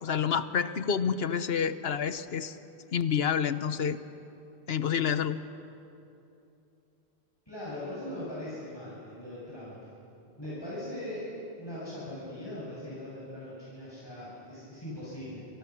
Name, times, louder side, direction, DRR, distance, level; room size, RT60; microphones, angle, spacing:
voice 1, 0.0-2.6 2.9-4.0 4.7-5.4, left 7 dB, 70° left, 12 dB, 1.2 m, -28 dB
voice 2, 7.5-9.8 10.4-11.3 11.5-15.6, left 1 dB, 25° left, -9 dB, 7.2 m, -40 dB
30.0 x 26.5 x 6.1 m, 2.8 s
omnidirectional pair, 1.1 m